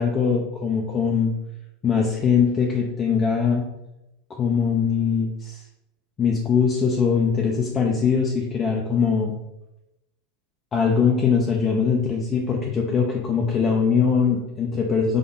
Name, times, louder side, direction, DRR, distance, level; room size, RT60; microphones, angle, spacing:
voice 1, 0.0-1.3 1.8-3.7 4.3-5.6 6.2-9.3 10.7-15.2, left 6 dB, 30° left, -1 dB, 0.6 m, -21 dB
3.8 x 3.3 x 3.9 m, 0.92 s
hypercardioid pair, 105°, 0 cm